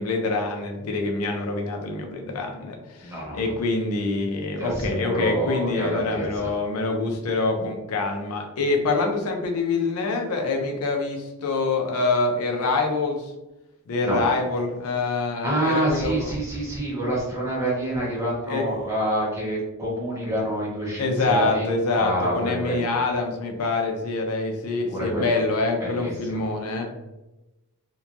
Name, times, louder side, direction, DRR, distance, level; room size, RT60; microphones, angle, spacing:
voice 1, 0.0-13.3 13.9-16.3 18.5-18.6 21.0-26.8, left 3 dB, 80° left, 2 dB, 0.5 m, -25 dB
voice 2, 3.0-3.4 4.6-6.5 14.0-14.2 15.4-21.7 21.9-22.9 24.9-25.4 25.8-26.4, right 1 dB, 15° right, -6 dB, 0.9 m, -27 dB
2.8 x 2.2 x 2.4 m, 1.0 s
head